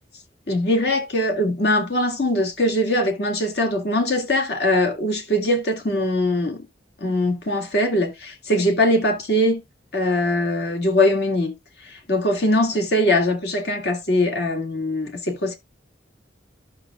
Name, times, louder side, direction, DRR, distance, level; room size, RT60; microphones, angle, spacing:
voice 1, 0.5-6.7 7.0-9.6 9.9-11.5 11.9-15.6, left 1 dB, 60° left, 2.0 m, -21 dB
13.5 x 6.0 x 2.2 m
head